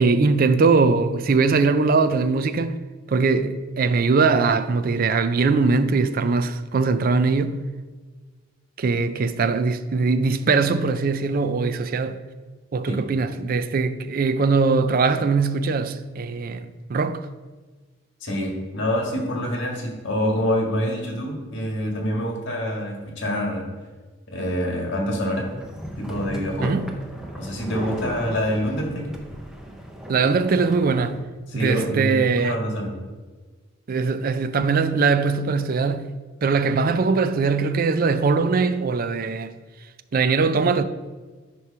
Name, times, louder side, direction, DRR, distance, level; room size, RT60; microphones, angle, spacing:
voice 1, 0.0-2.8 3.1-7.6 8.8-12.2 12.7-17.3 26.6-26.9 30.1-31.2 31.5-32.6 33.9-36.1 36.4-39.5 40.1-40.8, right 4 dB, 45° right, 0.4 m, -21 dB
voice 2, 18.2-23.6 24.3-25.5 26.0-26.7 27.3-29.2 31.5-32.9, equal, 60° left, 1.6 m, -26 dB
sound 1, 25.4-31.2, equal, 5° right, 0.7 m, -36 dB
9.3 x 3.1 x 5.6 m
head